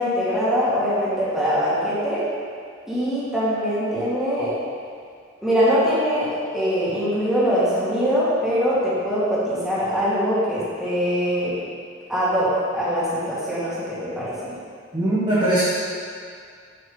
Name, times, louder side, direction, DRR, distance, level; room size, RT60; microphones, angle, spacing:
voice 1, 0.0-2.2 2.9-4.5 5.4-11.6 12.1-14.5, equal, ahead, -11 dB, 1.9 m, -22 dB
voice 2, 14.9-15.6, right 1 dB, 25° right, -12 dB, 1.4 m, -20 dB
6.8 x 6.1 x 3.9 m, 2.2 s
head